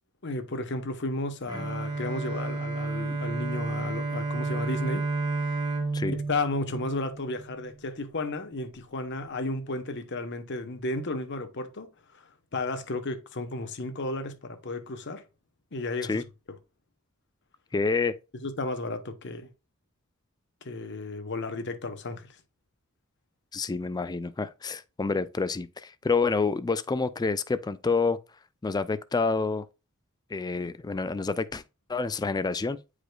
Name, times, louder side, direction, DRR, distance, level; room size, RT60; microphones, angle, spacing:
voice 1, 0.2-5.1 6.1-15.2 15.7-16.2 18.4-19.5 20.6-22.3, left 2 dB, 55° left, 1.0 m, -33 dB
Bowed string instrument, 1.5-7.7, right 3 dB, 20° right, 1.3 m, -31 dB
voice 2, 17.7-18.1 23.5-28.2 28.6-29.7 30.3-31.6 31.9-32.8, left 4 dB, 20° left, 0.3 m, -28 dB
8.9 x 4.9 x 2.3 m
head